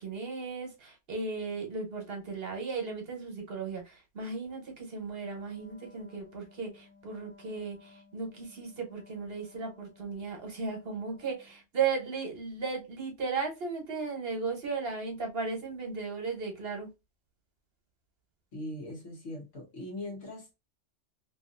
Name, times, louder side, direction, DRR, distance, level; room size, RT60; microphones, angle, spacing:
voice 1, 0.0-16.9, right 4 dB, 55° right, 1.1 m, -36 dB
Wind instrument woodwind instrument, 5.2-11.7, left 4 dB, 55° left, 0.8 m, -58 dB
voice 2, 18.5-20.5, left 1 dB, 75° left, 1.3 m, -40 dB
2.9 x 2.5 x 2.5 m
omnidirectional pair, 1.2 m